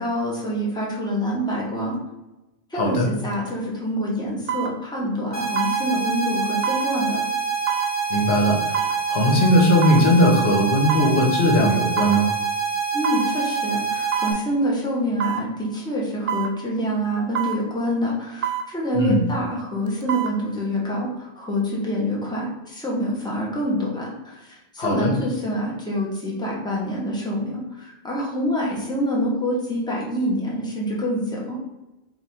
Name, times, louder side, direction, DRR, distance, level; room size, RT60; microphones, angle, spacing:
voice 1, 0.0-2.0 2.7-7.2 12.9-31.6, equal, 5° left, -4 dB, 0.8 m, -26 dB
voice 2, 2.7-3.1 8.1-12.3 18.9-19.2 24.8-25.1, equal, 80° left, 0 dB, 1.1 m, -19 dB
sound 1, 3.3-3.5 4.5-4.7 5.6-5.8 6.6-6.9 7.7-7.9 8.7-9.0 9.8-10.1 10.9-11.2 12.0-12.2 13.0-13.3 14.1-14.4 15.2-15.5 16.3-16.5 17.3-17.6 18.4-18.7 19.9-20.3 20.8-20.9, right 9 dB, 65° right, 0.7 m, -26 dB
sound 2, 5.3-14.3, right 6 dB, 40° left, 0.7 m, -26 dB
3.2 x 2.5 x 4.2 m, 1.0 s
omnidirectional pair, 1.1 m